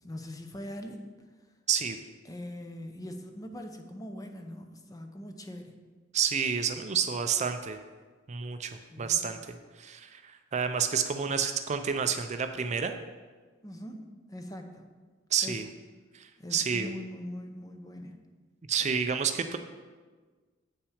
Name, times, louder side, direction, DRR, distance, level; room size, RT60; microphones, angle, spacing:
voice 1, 0.0-1.0 2.2-5.7 8.9-9.4 13.6-14.9 15.4-15.6 16.4-18.2, left 1 dB, 20° left, 5 dB, 0.6 m, -42 dB
voice 2, 6.1-7.8 8.3-12.9 15.3-15.7 16.1-16.9 18.7-19.6, right 7 dB, 35° right, 7 dB, 0.4 m, -29 dB
8.1 x 5.8 x 4.9 m, 1.4 s
head